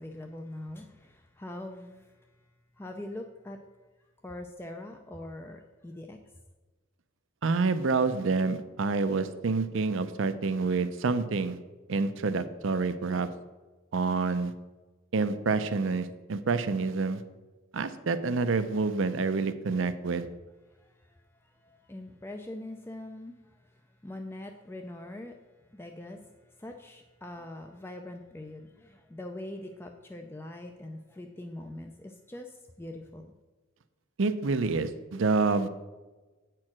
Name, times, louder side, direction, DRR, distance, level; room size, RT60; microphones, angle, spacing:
voice 1, 0.0-2.1 2.8-3.6 4.2-6.2 20.8-21.2 21.6-23.6 24.0-25.4 25.7-26.3 26.6-33.3, left 1 dB, 10° left, 3 dB, 0.4 m, -43 dB
voice 2, 7.4-11.6 11.9-13.3 13.9-14.5 15.1-17.2 17.7-20.3 34.2-35.7, right 4 dB, 65° right, 11 dB, 0.5 m, -28 dB
8.6 x 4.6 x 6.0 m, 1.2 s
head